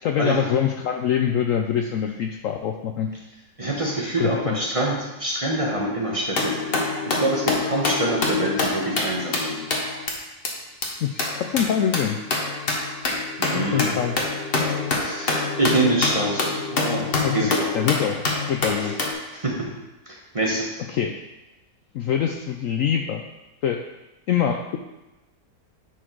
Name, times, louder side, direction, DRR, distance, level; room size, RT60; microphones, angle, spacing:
voice 1, 0.0-3.1 4.2-4.6 11.0-12.2 13.5-14.2 17.2-17.4 17.7-18.2 18.5-18.9 20.9-21.2 21.9-23.2 23.6-23.8 24.3-24.8, left 9 dB, 70° left, 4 dB, 0.8 m, -24 dB
voice 2, 3.6-9.6 13.4-14.0 14.9-17.7 18.8-18.9 19.3-19.7 20.1-20.7, right 1 dB, 25° right, -2 dB, 1.0 m, -26 dB
sound 1, 6.3-10.1 10.4-10.5 10.8-10.9 11.2-19.1, left 3 dB, 40° left, 1.2 m, -26 dB
10.0 x 4.6 x 4.5 m, 1.0 s
omnidirectional pair, 1.8 m